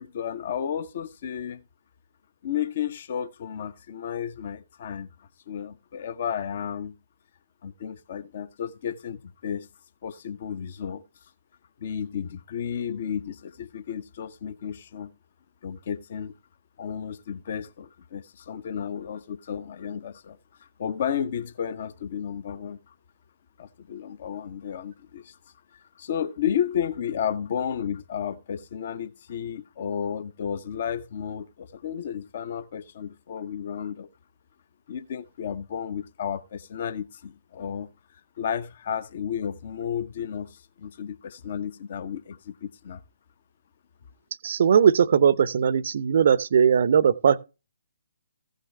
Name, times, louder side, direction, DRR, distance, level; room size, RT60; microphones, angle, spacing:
voice 1, 0.0-1.6 2.4-6.9 7.6-9.7 10.0-11.0 11.8-15.1 15.6-16.3 16.8-20.4 20.8-22.8 23.6-25.4 26.0-34.1 34.9-37.9 38.4-43.0, left 8 dB, 45° left, 0.8 m, -32 dB
voice 2, 44.4-47.4, right 7 dB, 50° right, 0.6 m, -19 dB
15.5 x 6.5 x 3.2 m
figure-of-eight pair, 130°, 0 cm